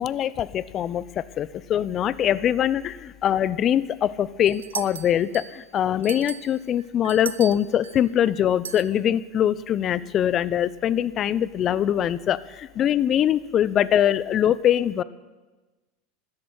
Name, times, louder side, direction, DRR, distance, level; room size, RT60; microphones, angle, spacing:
voice 1, 0.0-15.0, left 10 dB, 40° left, 19 dB, 0.7 m, -23 dB
sound 1, 4.5-5.6 6.0-8.0 8.6-8.9, right 8 dB, 90° right, 0.6 m, -36 dB
13.0 x 10.5 x 9.8 m, 1.2 s
hypercardioid pair, 90°, 0 cm